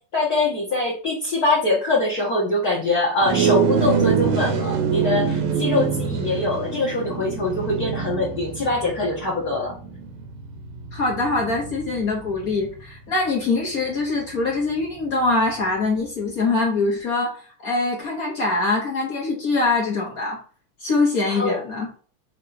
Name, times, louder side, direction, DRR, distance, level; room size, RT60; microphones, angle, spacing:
voice 1, 0.1-9.7 21.3-21.6, left 2 dB, 50° left, -4 dB, 1.2 m, -23 dB
sound 1, 3.2-12.8, right 7 dB, 85° right, 2.7 m, -25 dB
voice 2, 10.9-20.4 20.8-21.9, left 3 dB, 70° left, -2 dB, 0.8 m, -23 dB
7.4 x 3.1 x 4.0 m, 0.42 s
omnidirectional pair, 3.8 m